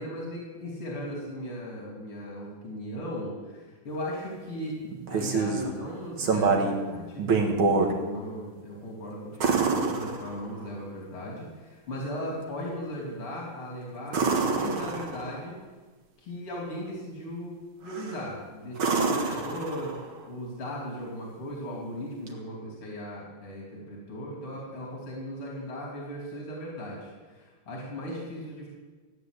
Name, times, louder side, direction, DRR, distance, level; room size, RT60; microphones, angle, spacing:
voice 1, 0.0-4.8 5.1-7.3 7.9-15.6 16.2-17.5 17.8-20.0 20.2-28.7, equal, 85° left, -3 dB, 4.0 m, -37 dB
sound 1, 4.8-5.7 6.2-6.8 7.2-7.9 9.4-10.7 14.1-15.4 17.9-18.2 18.7-20.1 22.3-22.4, right 4 dB, 70° right, 2.4 m, -26 dB
15.5 x 9.6 x 8.1 m, 1.3 s
omnidirectional pair, 2.3 m